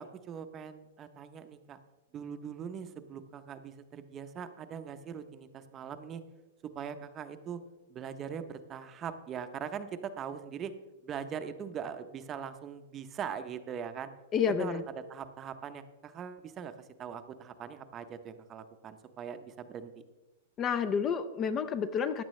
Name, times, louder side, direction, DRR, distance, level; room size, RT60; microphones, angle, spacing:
voice 1, 0.0-1.8 2.1-6.2 6.7-7.6 7.9-10.7 11.0-14.1 14.6-14.7 15.1-19.9, right 7 dB, 20° right, 9 dB, 0.6 m, -41 dB
voice 2, 14.3-14.8 20.6-22.2, left 6 dB, 20° left, 12 dB, 0.4 m, -29 dB
15.0 x 10.0 x 3.2 m, 1.1 s
supercardioid pair, 160°, 0 cm